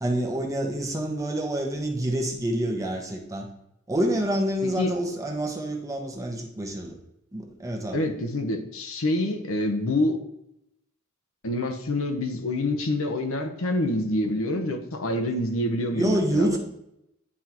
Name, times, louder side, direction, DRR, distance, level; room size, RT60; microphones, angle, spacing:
voice 1, 0.0-3.5 3.9-7.0 7.3-8.0 15.9-16.6, right 1 dB, 15° right, 0 dB, 1.0 m, -27 dB
voice 2, 4.6-4.9 7.9-10.2 11.4-16.6, left 1 dB, 70° left, 4 dB, 0.9 m, -27 dB
9.6 x 3.7 x 3.0 m, 0.82 s
head